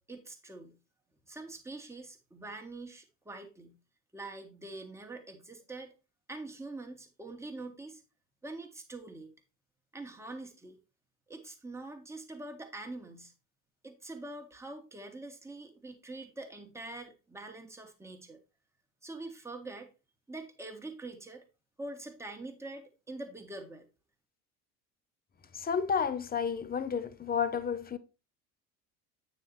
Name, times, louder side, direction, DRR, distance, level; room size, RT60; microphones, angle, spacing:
voice 1, 0.1-0.8 1.3-3.7 4.1-5.9 6.3-8.0 8.4-9.3 9.9-10.8 11.3-13.3 13.8-18.4 19.0-19.9 20.3-21.4 21.8-23.9, right 2 dB, 5° right, 1.5 m, -44 dB
voice 2, 25.5-28.0, left 6 dB, 20° left, 0.8 m, -31 dB
8.9 x 4.2 x 4.4 m
figure-of-eight pair, 65°, 43 cm